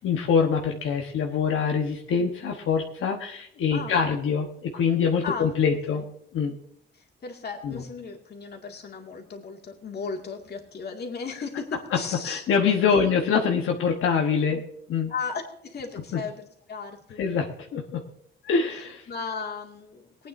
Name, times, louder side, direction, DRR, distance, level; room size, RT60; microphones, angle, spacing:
voice 1, 0.0-6.0 6.3-6.5 7.6-7.8 12.2-14.6 14.9-15.1 16.1-16.2 17.2-18.0 18.4-19.1, left 6 dB, 85° left, 2 dB, 1.1 m, -24 dB
voice 2, 6.9-12.4 12.9-13.0 15.1-17.2 19.1-20.3, left 5 dB, 50° left, 1 dB, 2.2 m, -36 dB
22.0 x 9.0 x 2.6 m, 0.72 s
cardioid pair, 120°, 21 cm